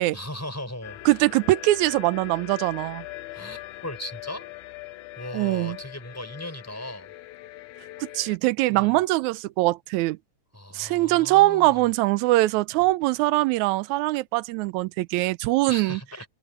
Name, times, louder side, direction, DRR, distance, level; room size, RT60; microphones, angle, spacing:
voice 1, 0.1-1.0 3.3-4.5 5.2-7.1 8.7-9.0 10.5-11.9 15.7-16.3, left 1 dB, 5° left, 5.6 m, -37 dB
sound 1, 0.8-8.4, left 16 dB, 80° left, 2.0 m, -41 dB
voice 2, 1.1-3.1 5.3-5.8 8.0-10.2 10.7-16.0, right 19 dB, 75° right, 1.8 m, -22 dB
open air
omnidirectional pair, 3.8 m